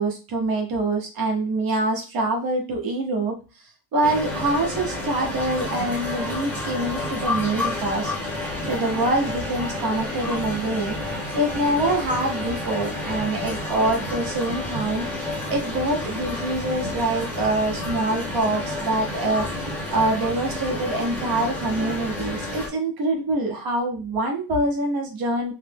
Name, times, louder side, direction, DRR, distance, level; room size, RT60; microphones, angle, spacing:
voice 1, 0.0-3.3 3.9-8.1 8.6-10.9 11.3-15.1 15.5-19.5 19.9-25.5, right 2 dB, 50° right, 1 dB, 1.1 m, -25 dB
sound 1, 4.0-22.7, left 2 dB, 5° left, 0.9 m, -30 dB
3.3 x 2.1 x 3.4 m, 0.32 s
cardioid pair, 135°, 47 cm